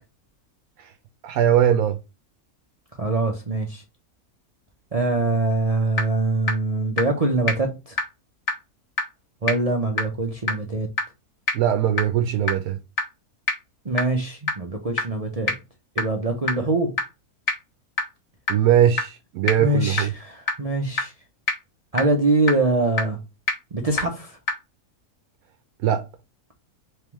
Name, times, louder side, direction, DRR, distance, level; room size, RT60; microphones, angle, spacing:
voice 1, 1.2-2.0 11.5-12.8 18.5-20.1 25.8-26.0, right 10 dB, 75° right, 1.0 m, -20 dB
voice 2, 3.0-3.8 4.9-8.0 9.4-10.9 13.8-15.5 16.0-16.9 19.6-21.1 21.9-23.2 23.7-24.4, right 2 dB, 50° right, 0.4 m, -23 dB
sound 1, 5.5-5.6 6.0-6.1 6.5-6.6 7.0-7.1 7.5-7.6 8.0-8.1 8.5-8.6 9.0-9.1 9.5-9.6 10.0-10.1 10.5-10.6 11.0-11.1 11.5-11.6 12.0-12.1 12.5-12.6 13.0-13.1 13.5-13.6 14.0-14.1 14.5-14.6 15.0-15.1 15.5-15.6 16.0-16.1 16.5-16.6 17.0-17.1 17.5-17.6 18.0-18.1 18.5-18.6 19.0-19.1 19.5-19.6 20.0-20.1 20.5-20.6 21.0-21.1 21.5-21.6 22.0-22.1 22.5-22.6 23.0-23.1 23.5-23.6 24.0-24.1 24.5-24.6, left 3 dB, 65° left, 1.6 m, -22 dB
3.5 x 3.4 x 3.0 m
omnidirectional pair, 1.6 m